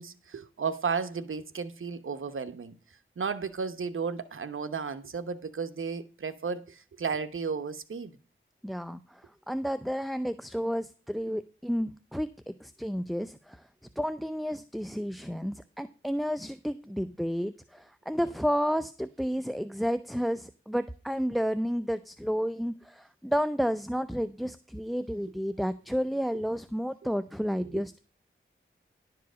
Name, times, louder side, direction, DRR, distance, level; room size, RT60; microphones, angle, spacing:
voice 1, 0.0-2.7 3.2-8.1 27.6-27.8, right 5 dB, 75° right, 1.0 m, -34 dB
voice 2, 8.6-9.2 9.5-12.3 12.6-13.6 14.0-28.0, equal, ahead, 0.5 m, -31 dB
11.0 x 4.8 x 6.2 m
cardioid pair, 55°, 21 cm